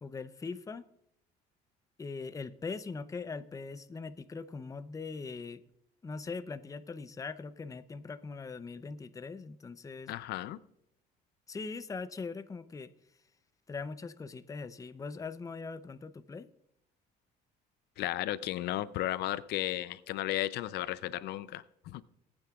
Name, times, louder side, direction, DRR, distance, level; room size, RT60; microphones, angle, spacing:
voice 1, 0.0-0.8 2.0-5.6 6.0-10.1 11.5-12.9 13.7-16.5, left 4 dB, 20° left, 13 dB, 0.5 m, -41 dB
voice 2, 10.1-10.6 18.0-22.0, left 14 dB, 75° left, 16 dB, 0.5 m, -34 dB
20.0 x 8.9 x 2.4 m, 0.76 s
cardioid pair, 110°, 17 cm